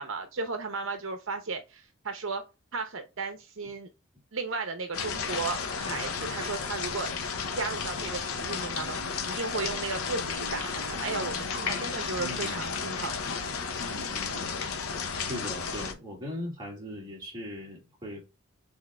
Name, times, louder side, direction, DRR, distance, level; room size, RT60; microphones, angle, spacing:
voice 1, 0.0-2.4 2.7-3.9 4.3-7.1 7.5-13.5, right 4 dB, 65° right, 0.8 m, -35 dB
sound 1, 4.9-15.9, left 5 dB, 85° left, 0.8 m, -33 dB
voice 2, 12.2-12.6 13.8-14.6 15.3-18.2, left 1 dB, 20° right, 2.0 m, -39 dB
6.4 x 3.6 x 2.3 m
head